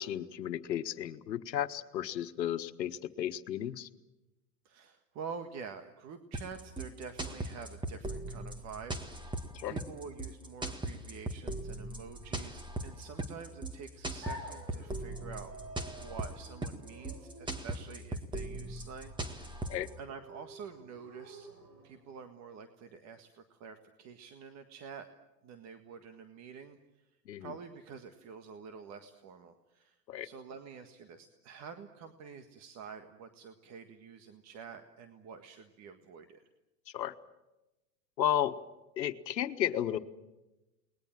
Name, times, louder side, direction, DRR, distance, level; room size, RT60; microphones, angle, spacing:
voice 1, 0.0-3.9 9.5-9.8 19.7-19.9 27.2-27.5 30.1-30.3 36.9-37.1 38.2-38.6 39.0-40.0, left 11 dB, 90° left, 10 dB, 1.5 m, -33 dB
voice 2, 4.7-15.6 16.0-21.5 21.8-25.1 25.4-26.8 27.4-36.4, right 6 dB, 35° right, 7 dB, 1.7 m, -48 dB
sound 1, 6.3-19.9, right 2 dB, 10° right, 1.8 m, -39 dB
sound 2, 14.2-22.2, equal, 80° right, 6.9 m, -51 dB
29.5 x 20.5 x 7.6 m, 1.0 s
hypercardioid pair, 125°, 49 cm